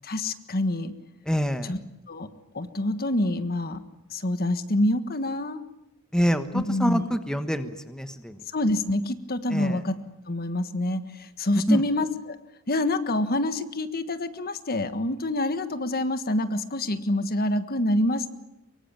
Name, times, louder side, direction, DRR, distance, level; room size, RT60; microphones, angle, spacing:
voice 1, 0.0-0.9 1.6-1.8 2.1-2.3 2.5-3.8 4.1-5.6 6.5-7.0 8.5-10.0 10.3-12.4 12.7-18.3, left 1 dB, 45° left, 10 dB, 1.5 m, -26 dB
voice 2, 1.3-1.7 6.1-8.4 9.5-9.8 11.7-11.8, equal, 5° left, 8 dB, 1.3 m, -25 dB
24.0 x 23.5 x 8.9 m, 0.87 s
head